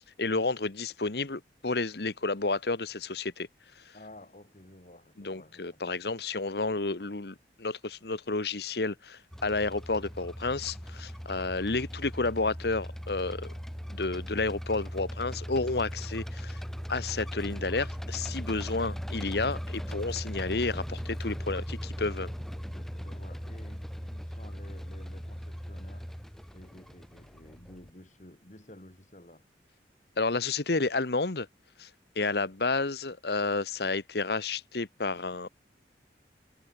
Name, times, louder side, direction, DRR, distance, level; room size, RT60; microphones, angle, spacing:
voice 1, 0.2-3.5 3.8-3.9 5.2-13.5 13.9-16.6 16.9-22.3 30.2-31.5 31.8-31.9 32.1-35.5, left 3 dB, 65° left, 1.2 m, -31 dB
voice 2, 3.9-6.0 22.7-26.1 26.5-29.4, left 1 dB, 40° left, 2.7 m, -52 dB
sound 1, 9.3-27.9, equal, ahead, 1.0 m, -38 dB
head